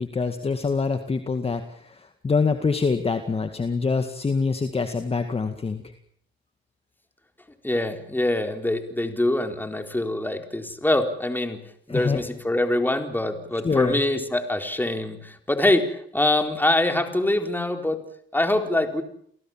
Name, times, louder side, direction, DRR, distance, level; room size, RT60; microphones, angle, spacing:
voice 1, 0.0-5.8 11.9-12.2 13.6-14.0, left 4 dB, 30° left, 7 dB, 2.0 m, -25 dB
voice 2, 7.6-11.6 11.9-18.0 18.3-19.0, left 1 dB, 10° left, 5 dB, 4.2 m, -24 dB
29.0 x 18.5 x 7.5 m, 0.65 s
cardioid pair, 90°, 20 cm